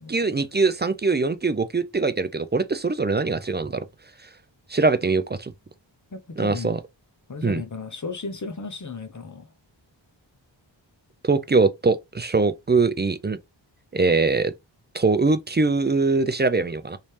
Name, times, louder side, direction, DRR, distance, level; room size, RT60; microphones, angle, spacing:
voice 1, 0.1-3.8 4.7-5.5 6.4-6.8 7.4-7.6 11.2-13.4 13.9-14.5 14.9-17.0, right 3 dB, 25° right, 0.3 m, -22 dB
voice 2, 6.1-6.7 7.3-9.4 14.1-14.2, left 3 dB, 40° left, 0.8 m, -35 dB
3.1 x 2.8 x 3.2 m
wide cardioid pair, 65°, 45 cm